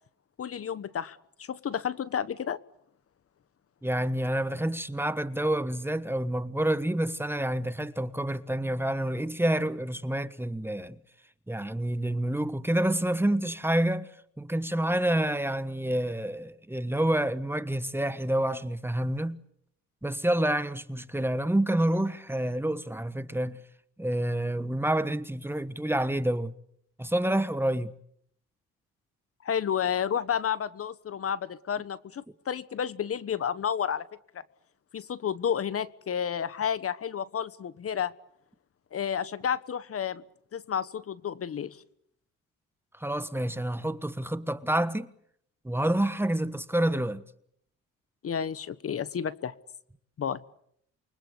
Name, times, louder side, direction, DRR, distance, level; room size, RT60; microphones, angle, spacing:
voice 1, 0.4-2.6 29.4-34.0 34.9-38.1 38.9-40.2 40.5-41.8 48.2-49.5 50.2-50.4, left 8 dB, 50° left, 1.3 m, -31 dB
voice 2, 3.8-10.9 11.5-14.1 14.4-19.4 20.0-23.6 24.0-26.5 27.0-27.9 43.0-45.1 45.6-47.2, right 1 dB, 5° right, 1.3 m, -28 dB
28.5 x 24.5 x 8.2 m
cardioid pair, 90°, 30 cm